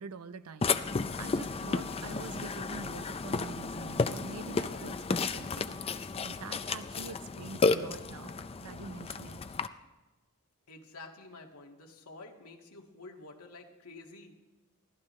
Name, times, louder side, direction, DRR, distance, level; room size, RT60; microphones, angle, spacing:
voice 1, 0.0-9.4, right 4 dB, 80° right, 13 dB, 0.7 m, -45 dB
Burping eructation, 0.6-9.7, left 4 dB, 25° left, 0.5 m, -33 dB
voice 2, 10.7-14.4, left 3 dB, 90° left, 1 dB, 2.0 m, -50 dB
23.5 x 16.5 x 3.2 m, 1.2 s
head